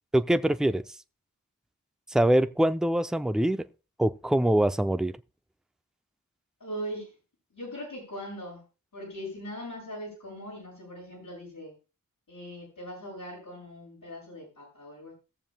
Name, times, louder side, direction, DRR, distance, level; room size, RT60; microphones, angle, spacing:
voice 1, 0.1-0.8 2.1-3.6 4.0-5.1, right 1 dB, ahead, 0.5 m, -24 dB
voice 2, 6.6-7.1 7.5-8.6 8.9-11.7 12.3-15.1, equal, 90° left, 6.7 m, -40 dB
19.5 x 7.2 x 2.3 m
cardioid pair, 50°, 33 cm